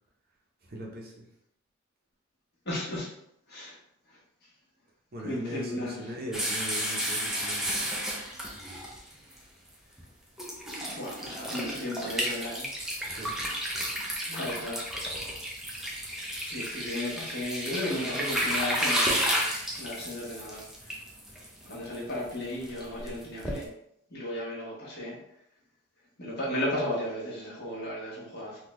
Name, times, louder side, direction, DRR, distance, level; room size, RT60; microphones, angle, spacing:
voice 1, 0.6-1.3 5.1-7.8 13.0-13.4, right 1 dB, 45° right, -1 dB, 0.7 m, -40 dB
voice 2, 2.7-3.1 3.5-3.8 5.2-6.0 10.9-12.7 14.3-14.8 16.4-20.6 21.7-23.7 24.1-25.2 26.2-28.6, left 1 dB, 50° left, -5 dB, 1.2 m, -34 dB
sound 1, 6.3-9.4 10.0-10.1 10.4-23.6, equal, ahead, 0.5 m, -32 dB
3.6 x 2.3 x 3.0 m, 0.75 s
head